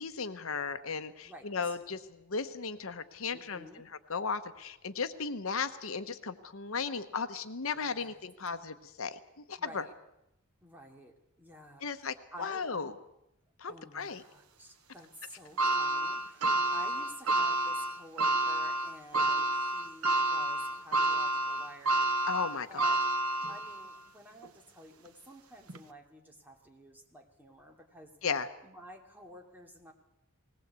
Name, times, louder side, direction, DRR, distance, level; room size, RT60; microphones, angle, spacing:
voice 1, 0.0-9.9 11.8-12.9 13.6-14.2 22.3-23.0 28.2-28.5, left 5 dB, 65° left, 10 dB, 1.0 m, -36 dB
voice 2, 1.2-1.8 3.3-3.8 7.7-8.2 9.6-9.9 10.6-12.7 13.7-22.3 22.7-23.0 23.5-28.1 28.6-29.9, right 1 dB, 10° right, 1 dB, 2.6 m, -52 dB
sound 1, 15.6-23.9 24.4-24.5 25.7-25.8, right 2 dB, 85° right, 1.2 m, -29 dB
20.0 x 18.5 x 8.2 m, 0.86 s
head